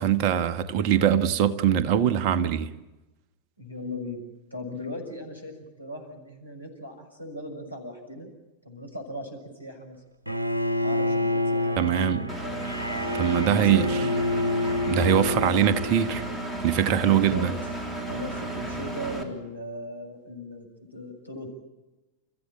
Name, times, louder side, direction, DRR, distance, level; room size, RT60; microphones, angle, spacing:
voice 1, 0.0-2.7 11.8-12.2 13.1-14.0 14.9-16.2 16.6-17.5, right 9 dB, 45° right, 10 dB, 1.5 m, -22 dB
voice 2, 3.6-4.2 4.5-8.3 8.6-10.0 10.8-12.8 13.3-14.2 17.0-17.5 18.1-21.6, left 1 dB, 90° left, 1 dB, 6.6 m, -38 dB
Bowed string instrument, 10.3-16.4, left 2 dB, 85° right, 1.4 m, -28 dB
Engine, 12.3-19.2, right 2 dB, 5° right, 3.6 m, -33 dB
30.0 x 15.0 x 8.8 m, 1.0 s
figure-of-eight pair, 90°, 0 cm